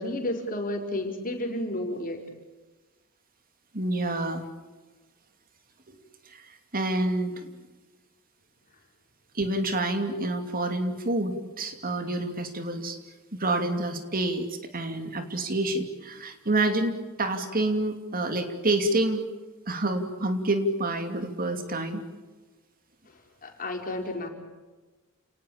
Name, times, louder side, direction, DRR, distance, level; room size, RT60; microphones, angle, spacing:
voice 1, 0.0-2.2 23.4-24.3, left 1 dB, 40° left, 3 dB, 4.9 m, -31 dB
voice 2, 3.7-4.5 5.9-6.0 6.3-7.5 9.3-13.0 13.3-19.3 19.7-22.0, right 2 dB, 45° right, 7 dB, 2.7 m, -28 dB
30.0 x 19.0 x 8.8 m, 1.2 s
head